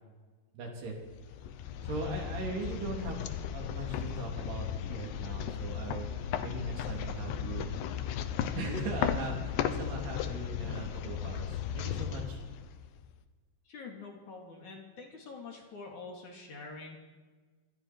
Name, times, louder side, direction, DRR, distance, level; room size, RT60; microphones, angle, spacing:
voice 1, 0.5-1.0 1.8-6.2 6.4-7.8 8.6-12.4, right 2 dB, 70° right, 0 dB, 5.6 m, -39 dB
sound 1, 1.0-13.1, left 9 dB, 80° left, 3.2 m, -36 dB
voice 2, 13.6-17.0, left 4 dB, 50° left, 0 dB, 3.8 m, -46 dB
27.0 x 25.0 x 4.7 m, 1.4 s
omnidirectional pair, 4.8 m